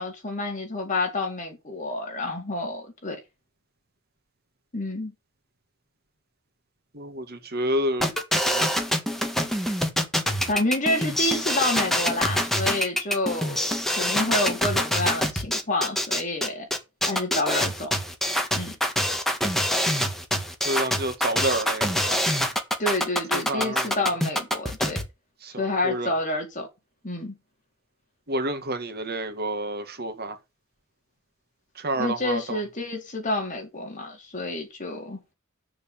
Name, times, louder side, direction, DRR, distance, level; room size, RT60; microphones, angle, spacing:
voice 1, 0.0-3.2 4.7-5.1 10.5-16.7 17.1-17.9 18.5-18.8 22.8-25.0 25.6-26.7 27.0-27.3 32.0-35.2, left 2 dB, 35° left, 4.1 m, -28 dB
voice 2, 6.9-8.1 8.5-8.8 20.6-22.2 23.3-24.0 25.4-26.1 28.3-30.4 31.8-32.6, right 1 dB, 50° right, 1.8 m, -29 dB
sound 1, 8.0-25.0, equal, ahead, 1.8 m, -25 dB
8.2 x 6.8 x 7.2 m
head